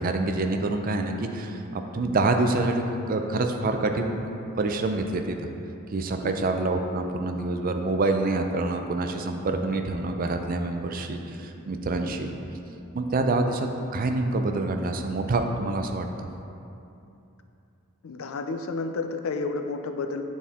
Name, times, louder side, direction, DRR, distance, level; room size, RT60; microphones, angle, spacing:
voice 1, 0.0-4.3 4.6-5.5 5.9-12.3 12.9-16.3, right 2 dB, 40° right, 5 dB, 0.4 m, -26 dB
voice 2, 18.0-20.2, left 3 dB, 70° left, 7 dB, 0.4 m, -31 dB
9.2 x 4.2 x 3.6 m, 2.7 s
head